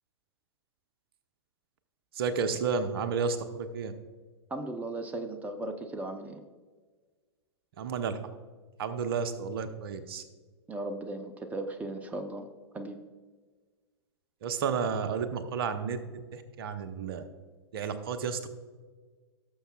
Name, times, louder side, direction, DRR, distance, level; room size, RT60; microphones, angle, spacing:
voice 1, 2.1-3.9 7.8-8.2 8.8-10.2 14.4-16.0 16.3-17.3 17.7-18.5, right 5 dB, 55° right, 9 dB, 0.9 m, -31 dB
voice 2, 4.5-6.4 10.7-12.5 12.7-13.0, right 2 dB, 10° right, 7 dB, 0.7 m, -36 dB
18.0 x 6.8 x 2.4 m, 1.4 s
figure-of-eight pair, 105°, 14 cm